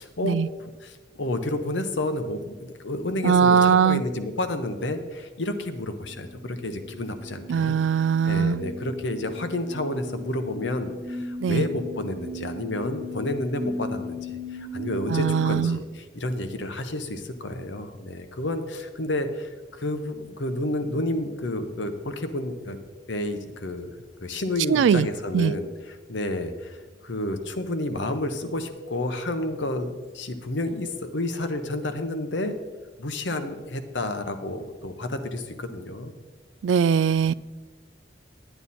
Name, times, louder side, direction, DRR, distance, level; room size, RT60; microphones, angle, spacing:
voice 1, 0.0-7.8 8.2-22.8 23.1-23.9 24.2-32.5 33.0-36.1, left 1 dB, 80° left, 1.0 m, -30 dB
voice 2, 3.2-4.0 7.5-8.6 11.4-11.7 15.1-15.8 24.7-25.1 25.3-25.5 36.6-37.3, right 7 dB, 85° right, 0.3 m, -20 dB
sound 1, 6.1-15.6, left 2 dB, 35° right, 1.3 m, -37 dB
11.0 x 9.2 x 4.2 m
head